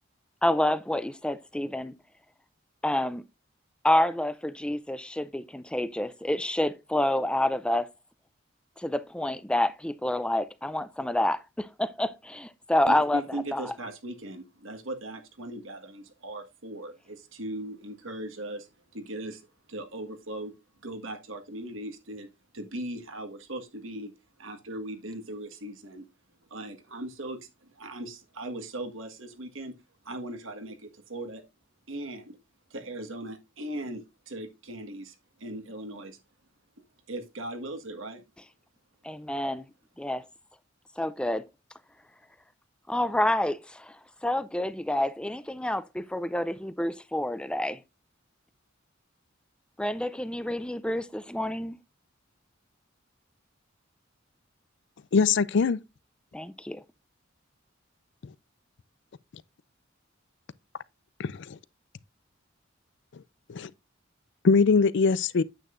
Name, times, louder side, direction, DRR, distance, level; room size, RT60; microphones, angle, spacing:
voice 1, 0.4-1.9 2.8-3.2 3.8-7.9 8.8-13.2 13.5-13.7 39.0-39.7 40.0-40.2 41.0-41.4 42.9-43.9 44.2-47.8 49.8-51.8 56.3-56.8, left 1 dB, 5° left, 0.4 m, -28 dB
voice 2, 12.9-20.5 20.8-22.3 22.5-24.1 24.4-26.0 26.5-29.7 30.0-31.4 31.9-32.4 32.7-36.2 37.1-38.2, right 1 dB, 75° right, 1.6 m, -39 dB
voice 3, 55.1-55.8 61.2-61.6 63.5-63.7 64.4-65.4, left 4 dB, 60° left, 0.5 m, -22 dB
9.2 x 8.0 x 2.5 m
head